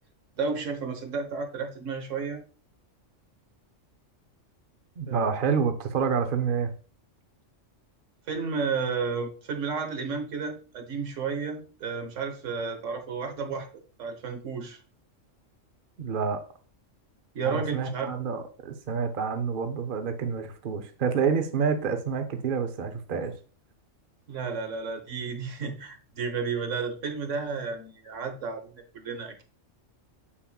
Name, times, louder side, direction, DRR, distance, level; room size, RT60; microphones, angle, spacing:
voice 1, 0.4-2.4 5.1-5.3 8.3-13.7 14.0-14.8 17.3-18.1 24.3-29.4, right 5 dB, 75° right, 6 dB, 1.5 m, -32 dB
voice 2, 5.0-6.7 16.0-16.4 17.4-23.3, right 6 dB, 50° right, 7 dB, 0.8 m, -28 dB
7.1 x 7.1 x 2.3 m, 0.37 s
omnidirectional pair, 1.3 m